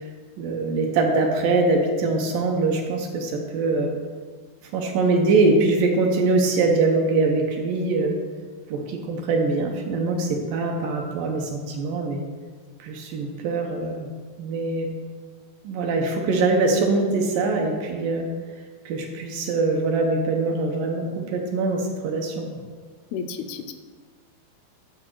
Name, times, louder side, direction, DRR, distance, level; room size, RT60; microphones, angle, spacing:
voice 1, 0.4-3.9 4.7-8.2 8.7-12.2 12.8-14.1 14.4-15.0 15.6-18.3 18.9-22.5, right 3 dB, 70° right, 2 dB, 2.3 m, -23 dB
voice 2, 23.1-23.7, left 6 dB, 85° left, 6 dB, 2.6 m, -32 dB
11.0 x 6.6 x 4.6 m, 1.5 s
omnidirectional pair, 4.4 m